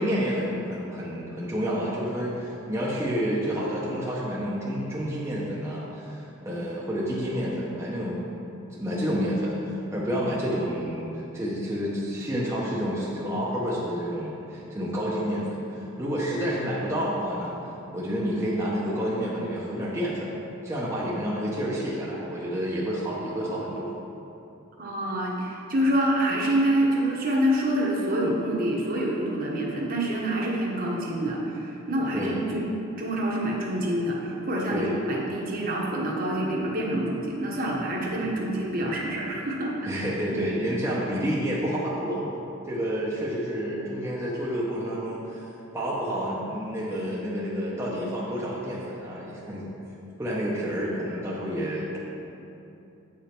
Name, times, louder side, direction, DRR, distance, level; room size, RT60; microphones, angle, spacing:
voice 1, 0.0-8.2 8.8-17.6 17.9-20.3 20.6-23.9 32.1-32.4 34.7-34.9 39.8-42.2 42.7-45.4 45.7-49.7 50.2-52.0, equal, 10° right, -7 dB, 0.8 m, -29 dB
voice 2, 24.8-32.6 33.0-39.7 40.3-40.5, right 1 dB, 45° right, -3 dB, 1.1 m, -26 dB
8.2 x 5.1 x 4.4 m, 2.9 s
head